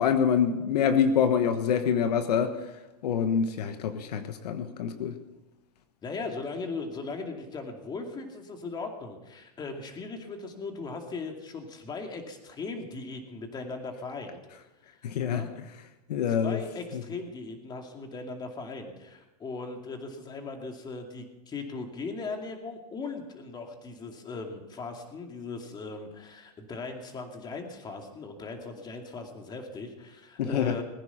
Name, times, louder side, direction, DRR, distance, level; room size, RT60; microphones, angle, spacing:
voice 1, 0.0-2.6 3.0-5.1 15.0-15.5 16.1-16.6 16.9-17.0 30.4-30.8, left 7 dB, 75° left, 1.3 m, -26 dB
voice 2, 6.0-14.4 15.3-15.5 16.3-30.8, left 3 dB, 20° left, 2.4 m, -38 dB
20.0 x 10.0 x 5.8 m
hypercardioid pair, 130°, 21 cm